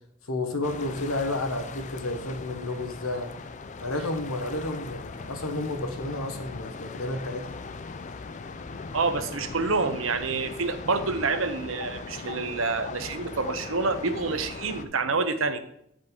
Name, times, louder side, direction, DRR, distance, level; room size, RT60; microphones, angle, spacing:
voice 1, 0.3-3.3 3.8-7.5, left 2 dB, 90° left, 5 dB, 1.4 m, -31 dB
sound 1, 0.6-14.9, left 4 dB, 35° left, 0.4 m, -39 dB
voice 2, 8.9-15.6, right 4 dB, 75° right, 9 dB, 0.9 m, -27 dB
9.6 x 5.3 x 5.2 m, 0.73 s
head